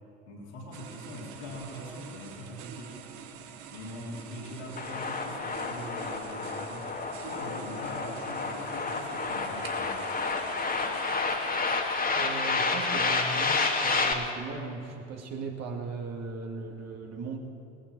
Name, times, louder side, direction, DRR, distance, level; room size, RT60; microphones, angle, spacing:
voice 1, 0.3-3.0 3.7-6.9 7.2-10.0, left 1 dB, 80° left, -4 dB, 3.6 m, -42 dB
sound 1, 0.7-13.0, right 8 dB, 65° right, 1.2 m, -47 dB
sound 2, 4.8-14.1, left 4 dB, 25° left, 1.8 m, -30 dB
voice 2, 12.1-17.4, right 4 dB, 50° right, 2 dB, 2.2 m, -38 dB
19.0 x 14.5 x 4.8 m, 2.7 s
figure-of-eight pair, 55°, 34 cm